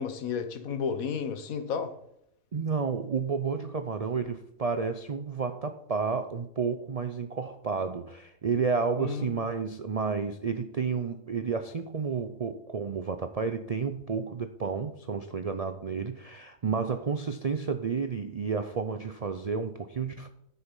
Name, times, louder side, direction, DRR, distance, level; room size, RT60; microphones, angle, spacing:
voice 1, 0.0-1.9 9.0-9.3, left 6 dB, 75° left, 10 dB, 1.4 m, -32 dB
voice 2, 2.5-20.3, right 5 dB, 70° right, 8 dB, 0.3 m, -31 dB
10.5 x 7.0 x 5.4 m, 0.77 s
omnidirectional pair, 1.5 m